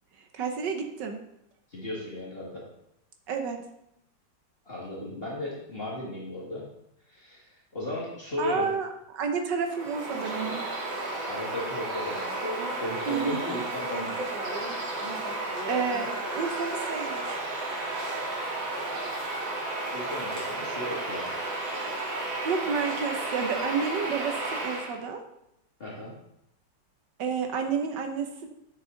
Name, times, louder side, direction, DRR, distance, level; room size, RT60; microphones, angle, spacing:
voice 1, 0.3-1.2 3.3-3.6 8.4-10.7 13.1-13.4 15.6-17.4 22.4-25.2 27.2-28.5, right 6 dB, 70° right, 5 dB, 1.6 m, -30 dB
voice 2, 1.7-2.6 4.7-6.7 7.1-8.7 11.3-12.2 12.8-14.2 19.9-21.3 25.8-26.1, left 1 dB, 30° left, -5 dB, 2.2 m, -35 dB
Bird vocalization bird call bird song, 9.7-25.0, right 2 dB, 90° right, 2.7 m, -33 dB
9.8 x 6.4 x 3.9 m, 0.80 s
omnidirectional pair, 2.1 m